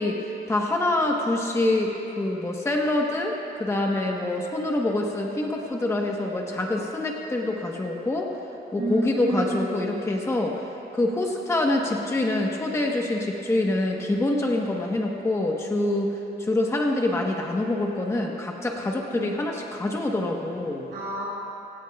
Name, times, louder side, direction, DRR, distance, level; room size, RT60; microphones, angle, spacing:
voice 1, 0.0-8.3 8.7-10.6 10.9-20.9, left 2 dB, 15° left, 0 dB, 1.1 m, -26 dB
voice 2, 8.8-9.6 19.1-19.2 20.9-21.3, right 2 dB, 90° right, -10 dB, 4.1 m, -29 dB
25.0 x 17.0 x 2.3 m, 2.9 s
wide cardioid pair, 160°, 17 cm